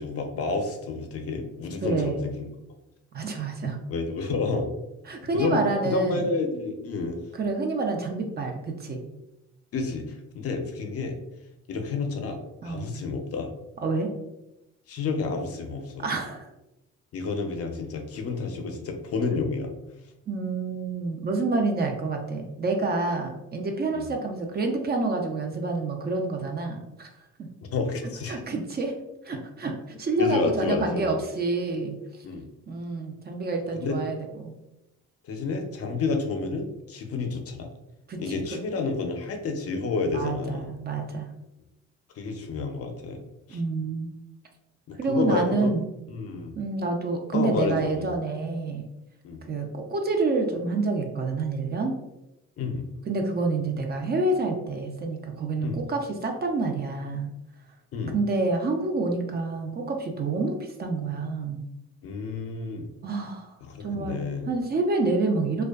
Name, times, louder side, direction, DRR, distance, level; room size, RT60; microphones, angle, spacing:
voice 1, 0.0-2.5 3.9-4.7 5.3-7.2 9.7-11.2 11.7-13.5 14.9-16.0 17.1-19.7 23.9-24.1 27.7-28.4 30.2-31.1 32.2-32.5 33.8-34.0 35.2-37.7 38.2-40.7 42.2-43.2 43.5-43.6 44.9-45.7 46.1-46.5 47.3-48.1 49.2-49.4 52.6-52.9 55.6-55.8 57.9-58.1 62.0-62.9 63.6-64.5, left 4 dB, 50° left, 4 dB, 0.5 m, -30 dB
voice 2, 1.8-2.2 3.1-3.8 5.1-6.2 7.3-9.0 12.6-12.9 13.8-14.1 16.0-16.5 20.3-27.2 28.3-28.9 29.2-32.2 32.7-34.5 38.1-38.3 40.1-41.3 43.5-44.1 45.0-45.8 46.6-48.9 49.5-52.0 53.1-57.3 58.1-61.6 63.0-65.6, right 3 dB, 35° right, 3 dB, 0.4 m, -28 dB
2.5 x 2.2 x 2.2 m, 0.91 s
cardioid pair, 90°, 30 cm